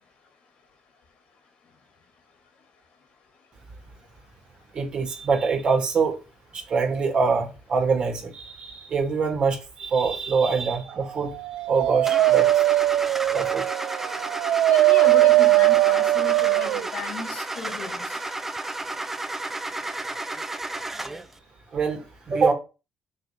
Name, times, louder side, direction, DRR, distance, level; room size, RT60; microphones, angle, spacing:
voice 1, 4.7-6.2 6.5-11.3 11.7-12.6 13.3-13.7 21.7-22.5, right 5 dB, 50° right, 2.1 m, -24 dB
Dog, 11.3-16.9, right 17 dB, 85° right, 0.4 m, -20 dB
Car / Engine starting, 12.1-21.3, right 2 dB, 15° right, 0.8 m, -32 dB
voice 2, 14.7-18.2, left 5 dB, 70° left, 2.1 m, -34 dB
6.1 x 3.3 x 5.7 m
cardioid pair, 100°, 2 cm